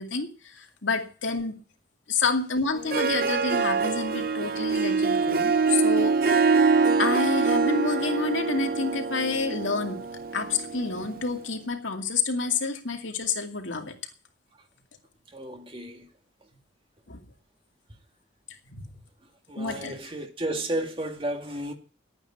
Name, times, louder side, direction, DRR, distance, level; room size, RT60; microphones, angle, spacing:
voice 1, 0.0-1.6 2.1-6.2 7.0-10.0 10.3-13.9 17.1-17.2 18.7-18.9 19.6-19.9, left 4 dB, 85° left, 2.4 m, -29 dB
Harp, 2.7-11.3, right 4 dB, 50° right, 0.7 m, -24 dB
voice 2, 15.3-16.1 19.5-21.7, right 1 dB, 25° right, 2.1 m, -32 dB
11.5 x 9.2 x 8.7 m
head